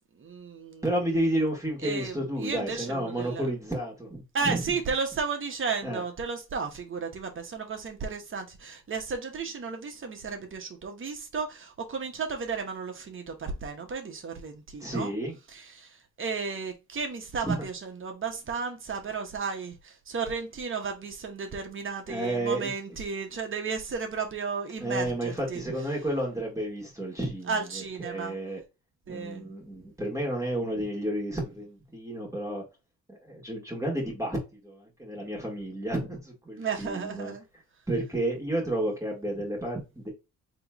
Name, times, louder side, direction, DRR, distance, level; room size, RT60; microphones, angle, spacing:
voice 1, 0.2-0.8 1.8-3.5 4.3-15.1 15.5-25.6 27.5-28.4 29.1-29.5 36.6-37.4, right 5 dB, 40° right, 1.3 m, -34 dB
voice 2, 0.8-4.6 5.8-6.0 14.8-15.4 17.4-17.6 22.1-22.7 24.8-28.6 29.1-32.6 33.1-37.3 37.9-40.1, right 1 dB, 10° right, 2.1 m, -31 dB
3.7 x 3.1 x 3.6 m
cardioid pair, 90°, 30 cm